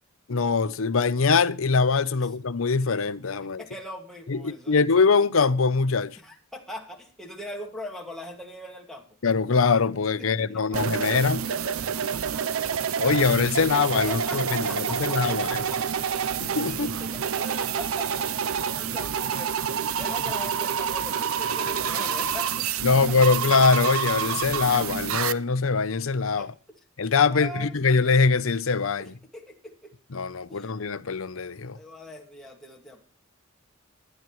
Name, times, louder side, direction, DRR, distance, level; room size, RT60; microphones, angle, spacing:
voice 1, 0.3-3.6 4.3-6.1 9.2-11.4 13.0-15.6 16.4-16.9 22.8-26.5 27.0-29.1 30.1-31.8, left 4 dB, 70° left, 0.7 m, -23 dB
voice 2, 3.6-4.8 6.2-9.1 10.2-10.8 11.8-12.8 13.6-16.2 17.0-19.6 20.0-23.2 26.4-26.8 27.3-27.7 29.0-29.9 30.5-30.8 31.7-33.0, left 1 dB, ahead, 2.1 m, -41 dB
sound 1, 10.7-25.3, right 7 dB, 85° right, 0.6 m, -28 dB
20.0 x 10.5 x 3.1 m
head